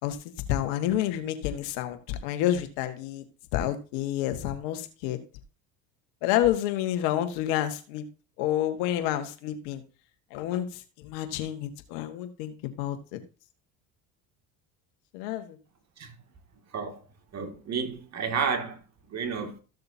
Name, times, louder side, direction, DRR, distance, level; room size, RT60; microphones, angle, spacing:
voice 1, 0.0-3.2 3.5-5.2 6.2-8.0 8.4-9.8 10.3-13.2 15.1-15.6, left 12 dB, 75° left, 1.7 m, -29 dB
voice 2, 17.3-18.8 19.1-19.6, right 6 dB, 40° right, 2.3 m, -31 dB
14.5 x 6.7 x 2.8 m
supercardioid pair, 80°, 39 cm